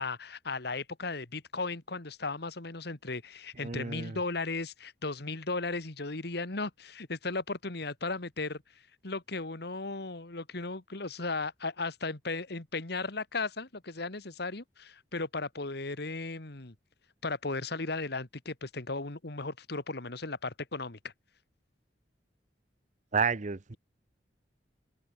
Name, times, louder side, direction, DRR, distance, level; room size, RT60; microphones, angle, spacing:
voice 1, 0.0-8.6 9.0-16.8 17.2-21.1, left 3 dB, 65° left, 1.9 m, -36 dB
voice 2, 3.6-4.2 23.1-23.8, right 5 dB, 45° right, 0.8 m, -31 dB
head